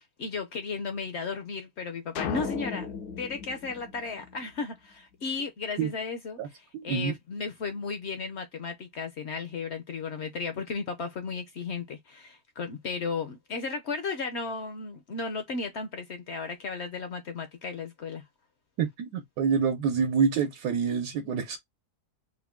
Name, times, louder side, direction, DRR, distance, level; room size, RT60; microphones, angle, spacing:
voice 1, 0.0-18.2, left 4 dB, 65° left, 0.7 m, -35 dB
sound 1, 2.2-4.7, left 6 dB, 85° left, 1.2 m, -36 dB
voice 2, 6.7-7.1 18.8-21.6, right 6 dB, 85° right, 1.3 m, -27 dB
3.6 x 2.2 x 3.5 m
omnidirectional pair, 1.7 m